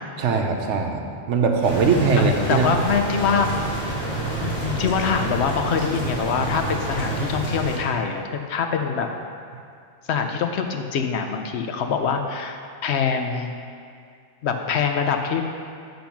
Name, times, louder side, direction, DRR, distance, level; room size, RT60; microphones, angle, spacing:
voice 1, 0.2-2.7, right 4 dB, 75° right, 3 dB, 1.0 m, -21 dB
sound 1, 1.6-7.8, right 2 dB, 45° left, 2.4 m, -28 dB
voice 2, 2.1-3.6 4.4-8.2 8.5-9.1 10.1-13.5 14.4-15.4, left 6 dB, 65° left, 4 dB, 0.8 m, -24 dB
8.6 x 3.9 x 5.8 m, 2.3 s
omnidirectional pair, 1.3 m